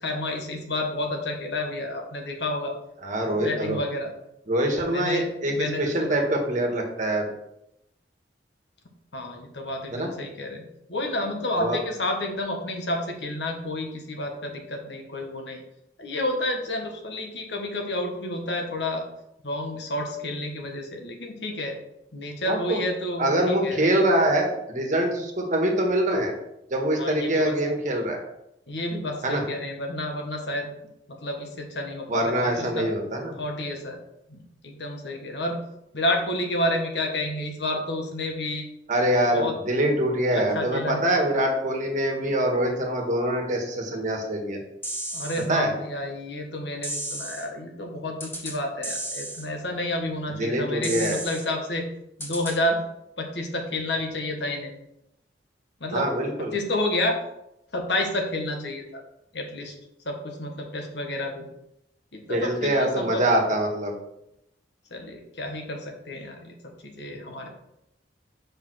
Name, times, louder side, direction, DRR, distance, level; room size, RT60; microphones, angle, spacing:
voice 1, 0.0-2.7 3.2-4.1 4.9-6.2 9.1-10.6 10.9-15.6 16.0-19.0 19.4-21.8 22.1-23.8 27.0-27.7 28.7-30.7 31.1-32.9 33.4-34.0 34.3-35.6 35.9-38.6 39.3-39.5 39.8-40.0 40.3-41.0 45.1-51.8 52.2-52.8 53.2-54.7 55.8-56.1 56.5-57.2 57.7-59.0 59.3-59.7 60.0-61.5 62.1-63.2 64.9-66.5 66.8-67.5, left 1 dB, 70° left, 2 dB, 1.4 m, -30 dB
voice 2, 3.0-3.8 4.5-7.3 9.9-10.1 11.6-11.8 22.5-22.8 23.2-26.3 26.7-28.2 29.2-29.4 32.1-33.3 38.9-44.6 45.5-45.7 50.3-51.2 55.9-56.5 62.3-63.9, right 1 dB, 45° right, 2 dB, 1.5 m, -24 dB
sound 1, 44.8-45.4 46.8-47.4 48.2-48.5 48.8-49.4 50.8-51.4 52.2-52.5, right 1 dB, 15° left, 1.4 m, -33 dB
5.2 x 4.9 x 6.2 m, 0.82 s
head